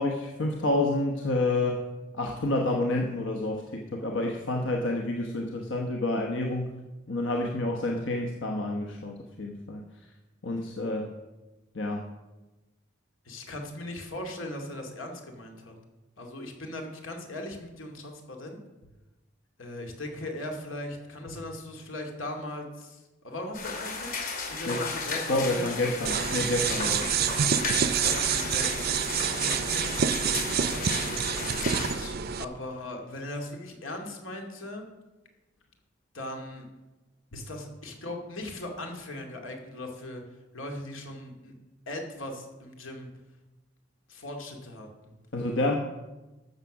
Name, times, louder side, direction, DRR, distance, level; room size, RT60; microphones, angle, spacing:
voice 1, 0.0-1.9 2.2-6.7 7.1-9.8 10.4-11.1 11.7-12.1 24.7-24.9 25.3-27.1 45.3-45.8, left 2 dB, 70° left, 2 dB, 1.1 m, -29 dB
voice 2, 13.2-15.7 16.2-18.6 19.6-26.1 26.9-27.3 28.0-34.9 36.1-36.7 37.3-40.2 40.5-41.5 41.9-43.1 44.1-44.9, left 1 dB, 85° left, 3 dB, 2.3 m, -39 dB
sound 1, 23.5-31.9, left 4 dB, 45° left, 2.6 m, -34 dB
sound 2, 26.0-32.4, right 8 dB, 50° right, 0.5 m, -27 dB
13.5 x 6.9 x 6.1 m, 1.1 s
head